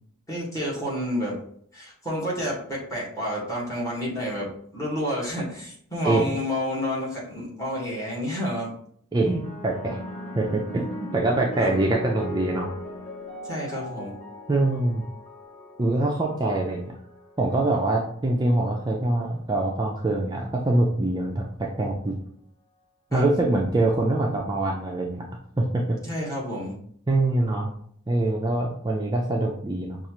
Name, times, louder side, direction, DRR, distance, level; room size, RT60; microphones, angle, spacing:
voice 1, 0.3-1.3 1.7-8.7 11.6-11.8 13.4-14.2 23.1-23.3 26.0-26.8, equal, 15° left, -5 dB, 1.4 m, -29 dB
voice 2, 9.1-10.0 10.4-10.9 11.1-12.7 14.5-15.0 15.8-16.9 17.4-22.2 23.1-25.2 25.6-26.0 27.1-27.7 28.1-30.0, right 2 dB, 20° right, -1 dB, 0.4 m, -24 dB
sound 1, 9.2-17.8 18.7-19.1, equal, 35° left, 1.2 m, -38 dB
5.4 x 2.4 x 2.9 m, 0.64 s
head